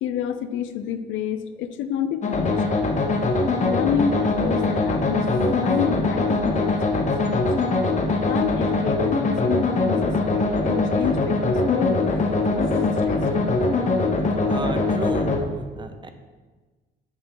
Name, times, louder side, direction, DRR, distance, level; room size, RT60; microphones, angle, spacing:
voice 1, 0.0-2.6 3.6-7.6 8.2-12.3 12.6-13.6, left 8 dB, 80° left, 11 dB, 0.4 m, -29 dB
sound 1, 2.2-15.4, left 3 dB, 35° left, 0.8 m, -22 dB
Fixed-wing aircraft airplane, 2.7-8.1 8.4-14.3, left 2 dB, 70° right, 1.3 m, -41 dB
voice 2, 14.5-16.1, right 3 dB, 25° right, 7 dB, 0.5 m, -34 dB
6.5 x 5.6 x 2.9 m, 1.3 s
cardioid pair, 90°, 20 cm